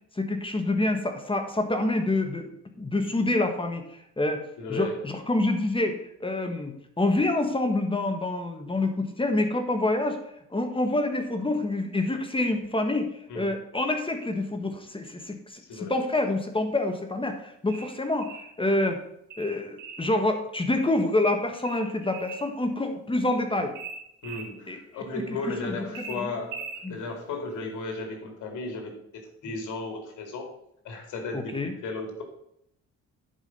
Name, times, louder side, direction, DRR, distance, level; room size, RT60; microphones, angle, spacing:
voice 1, 0.1-2.5 2.8-4.4 4.7-10.2 10.5-15.6 15.9-19.0 19.4-23.7 24.7-24.8 25.6-25.8 26.1-26.3 26.8-27.0 31.3-31.7, left 2 dB, 15° left, 6 dB, 1.4 m, -27 dB
voice 2, 4.6-5.0 13.3-13.6 15.6-16.0 24.2-30.5 30.8-32.2, left 3 dB, 80° left, 3 dB, 2.6 m, -35 dB
sound 1, 17.7-18.5 19.3-20.1 21.6-22.5 23.7-24.5 25.9-26.8, right 5 dB, 90° right, 1.9 m, -40 dB
10.5 x 4.9 x 5.4 m, 0.75 s
cardioid pair, 90°, 30 cm